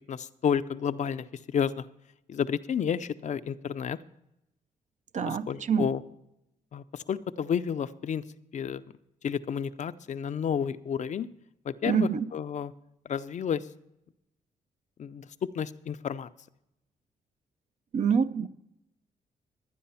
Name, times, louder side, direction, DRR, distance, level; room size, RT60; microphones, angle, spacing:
voice 1, 0.1-1.9 2.3-4.0 5.3-6.0 6.7-8.2 8.5-8.8 9.2-11.3 11.7-12.7 13.1-13.7 15.0-15.3 15.5-16.3, left 7 dB, 55° left, 0.5 m, -31 dB
voice 2, 5.1-5.9 11.8-12.3 17.9-18.5, right 6 dB, 55° right, 0.6 m, -26 dB
11.5 x 9.5 x 5.6 m
cardioid pair, 90°, 14 cm